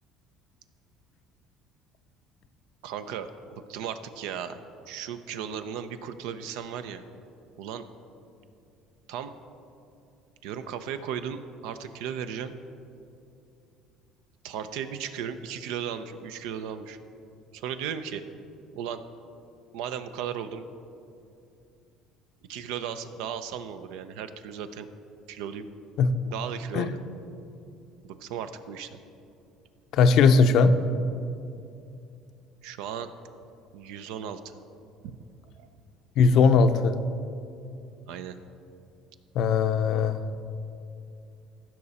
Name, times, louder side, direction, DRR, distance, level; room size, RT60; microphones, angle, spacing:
voice 1, 2.8-4.6 4.9-7.0 7.6-7.8 9.1-9.3 10.4-12.5 14.4-17.0 17.5-18.2 18.7-19.0 19.7-20.7 22.5-24.9 25.3-25.7 26.2-27.0 28.0-28.9 32.6-33.1 33.7-34.6 35.0-35.2 35.6-35.7 38.1-38.4, right 8 dB, 80° right, 10 dB, 0.6 m, -36 dB
voice 2, 29.9-30.8 36.2-37.0 39.3-40.2, left 5 dB, 60° left, 10 dB, 0.6 m, -19 dB
15.5 x 5.9 x 4.2 m, 2.6 s
cardioid pair, 115°, 0 cm